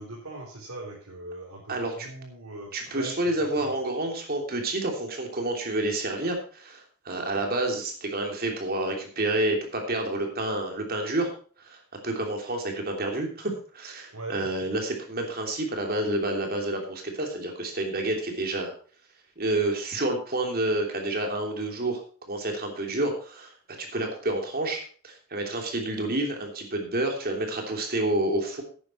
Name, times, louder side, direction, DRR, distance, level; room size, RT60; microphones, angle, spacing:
voice 1, 0.0-3.8 14.1-14.7, right 2 dB, 85° right, -4 dB, 3.8 m, -40 dB
voice 2, 1.7-2.1 2.7-11.3 11.6-18.7 19.4-22.0 22.3-23.5 23.8-28.6, right 2 dB, 45° right, 3 dB, 3.1 m, -29 dB
11.5 x 9.7 x 4.5 m, 0.43 s
head